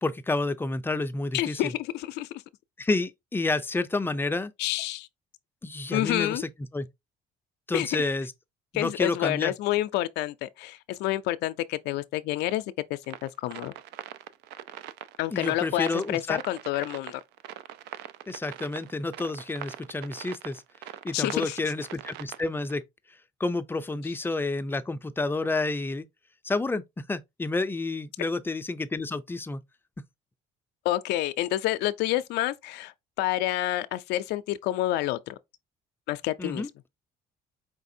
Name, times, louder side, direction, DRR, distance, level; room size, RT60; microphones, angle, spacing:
voice 1, 0.0-1.7 2.8-4.5 5.6-6.9 7.7-8.3 8.7-9.5 15.3-16.4 18.3-20.6 21.0-22.8 23.4-26.1 26.4-29.6 36.4-36.7, left 3 dB, 15° left, 0.4 m, -30 dB
voice 2, 1.3-2.3 4.6-5.1 5.9-6.4 7.7-8.1 8.7-12.6 12.9-13.7 15.2-17.2 21.1-21.7 30.8-35.4 36.1-36.6, left 15 dB, 85° left, 0.4 m, -28 dB
sound 1, 13.0-22.8, right 12 dB, 85° right, 0.4 m, -42 dB
4.9 x 3.3 x 2.6 m
cardioid pair, 110°, 17 cm